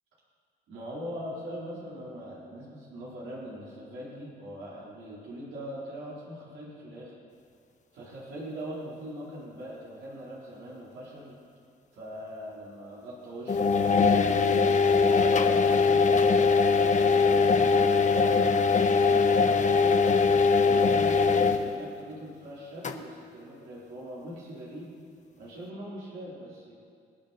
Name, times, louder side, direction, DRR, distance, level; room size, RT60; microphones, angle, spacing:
voice 1, 0.7-7.1 7.9-11.4 11.9-16.1 16.5-20.0 20.6-25.0 25.4-26.7, equal, 75° right, -7 dB, 4.5 m, -41 dB
sound 1, 13.5-21.7 22.8-22.9, left 4 dB, 40° left, 1.1 m, -22 dB
26.0 x 8.9 x 4.5 m, 2.2 s
cardioid pair, 90°, 20 cm